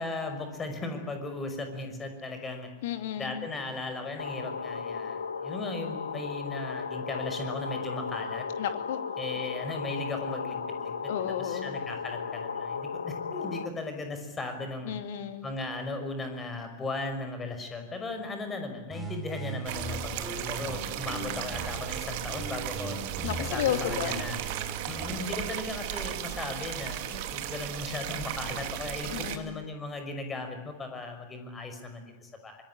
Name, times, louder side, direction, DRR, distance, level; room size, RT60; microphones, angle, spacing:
voice 1, 0.0-2.7 3.2-8.5 9.2-11.1 11.4-14.9 15.4-23.0 23.4-24.4 24.9-32.6, left 2 dB, 15° left, 6 dB, 5.7 m, -37 dB
voice 2, 2.8-3.5 8.6-9.0 11.1-11.8 14.8-15.5 23.2-24.2 29.1-29.6, left 10 dB, 55° left, 8 dB, 2.6 m, -33 dB
sound 1, 4.2-13.7, left 6 dB, 70° left, 1.5 m, -35 dB
sound 2, 18.9-21.9 22.3-25.3, right 2 dB, 5° right, 5.9 m, -39 dB
sound 3, 19.7-29.4, right 12 dB, 50° right, 2.4 m, -35 dB
25.0 x 22.5 x 10.0 m, 1.1 s
figure-of-eight pair, 90°, 0 cm